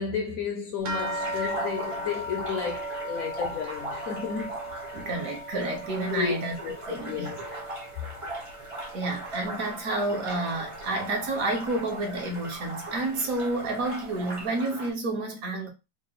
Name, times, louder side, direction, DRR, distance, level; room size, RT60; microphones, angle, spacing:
voice 1, 0.0-4.6 6.1-6.4 6.6-6.7 7.1-7.4, left 6 dB, 65° left, 0.9 m, -32 dB
sound 1, 0.9-14.9, right 1 dB, 35° right, 0.5 m, -39 dB
sound 2, 0.9-9.7 10.0-10.9 11.6-11.7 12.1-12.3, right 1 dB, 80° right, 1.5 m, -38 dB
voice 2, 4.9-6.6 6.9-7.3 8.9-15.7, right 2 dB, 55° right, 1.2 m, -30 dB
3.7 x 2.5 x 3.9 m
omnidirectional pair, 2.0 m